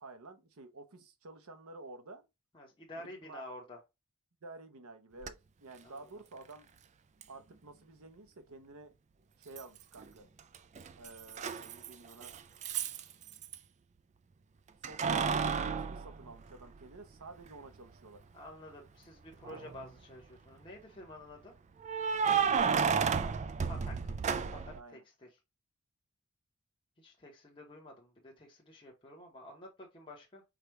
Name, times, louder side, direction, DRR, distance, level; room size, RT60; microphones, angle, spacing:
voice 1, 0.0-2.2 3.0-3.4 4.4-6.7 7.3-8.9 9.4-10.3 11.0-12.3 14.8-18.2 24.7-25.0, right 3 dB, 75° right, 0.9 m, -51 dB
voice 2, 2.5-3.8 5.8-5.9 18.3-21.5 23.7-24.1 24.5-25.3 27.0-30.4, left 1 dB, 25° left, 1.0 m, -50 dB
Keys jangling, 5.2-5.3 7.2-7.3 9.6-10.1 10.4-13.6 14.8-17.0 17.4-17.5 19.3-19.9 21.8-24.8, right 6 dB, 30° right, 0.3 m, -32 dB
4.9 x 2.4 x 4.4 m
head